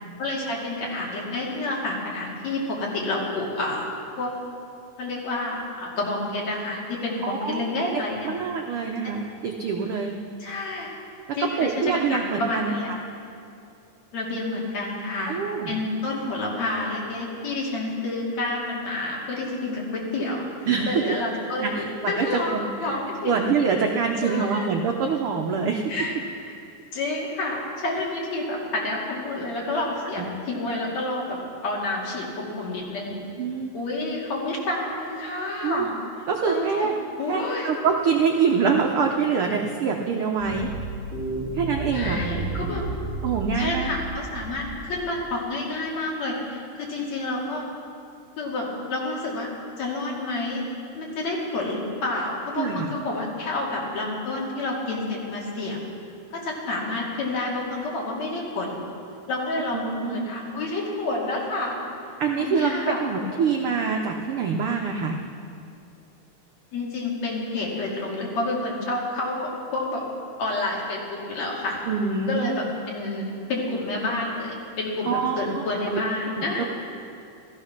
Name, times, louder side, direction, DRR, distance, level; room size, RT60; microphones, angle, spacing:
voice 1, 0.2-3.9 4.2-4.3 5.0-8.3 9.0-9.1 10.4-10.9 11.4-12.9 14.1-15.4 15.7-20.5 20.9-23.4 24.2-24.7 25.9-26.1 26.4-26.6 26.9-33.2 33.7-35.9 36.4-36.9 37.2-37.7 41.9-42.9 43.6-47.6 48.4-49.5 49.8-50.6 51.0-55.8 56.3-58.8 59.3-61.7 62.4-63.0 66.7-70.0 70.4-71.8 72.3-76.7, left 2 dB, 60° left, -3 dB, 3.6 m, -29 dB
voice 2, 7.2-7.6 8.2-10.2 11.3-12.7 15.3-15.8 20.6-21.2 21.6-22.3 22.5-25.9 30.2-30.3 33.4-33.7 35.6-35.9 36.3-36.9 37.3-40.7 41.5-42.4 43.2-43.9 52.6-52.9 59.7-60.3 62.2-65.2 71.9-72.6 75.1-75.5 75.9-76.0 76.4-76.6, right 5 dB, 80° right, 2 dB, 1.2 m, -25 dB
sound 1, 40.4-45.1, right 3 dB, 15° right, 3.3 m, -32 dB
15.0 x 14.0 x 5.9 m, 2.5 s
omnidirectional pair, 3.6 m